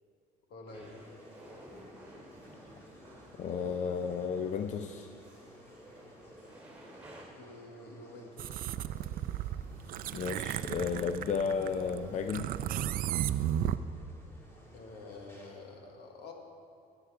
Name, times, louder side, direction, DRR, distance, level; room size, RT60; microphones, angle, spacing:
voice 1, 0.5-0.9 7.3-8.6 14.7-16.3, left 2 dB, 75° left, 2 dB, 1.6 m, -48 dB
sound 1, 0.7-15.8, left 1 dB, 15° left, 1.9 m, -56 dB
sound 2, 0.7-7.2, right 1 dB, 10° right, 2.7 m, -54 dB
voice 2, 3.4-5.1 10.1-12.5, left 6 dB, 45° left, 7 dB, 0.5 m, -33 dB
sound 3, 8.4-13.8, right 11 dB, 60° right, 0.4 m, -34 dB
14.0 x 8.0 x 4.7 m, 2.5 s
cardioid pair, 110°, 17 cm